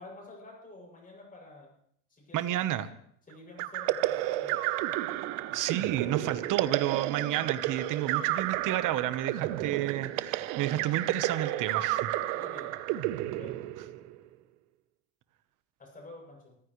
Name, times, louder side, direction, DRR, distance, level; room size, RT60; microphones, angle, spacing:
voice 1, 0.0-1.7 2.1-2.6 3.3-4.6 12.3-12.9 13.4-13.6 15.8-16.6, left 2 dB, 20° left, -1 dB, 7.3 m, -49 dB
voice 2, 2.3-2.9 5.5-12.1, right 12 dB, 55° right, 12 dB, 1.2 m, -31 dB
sound 1, 3.6-14.2, right 15 dB, 80° right, 0.9 m, -31 dB
24.5 x 15.0 x 3.2 m, 0.67 s
cardioid pair, 120°, 37 cm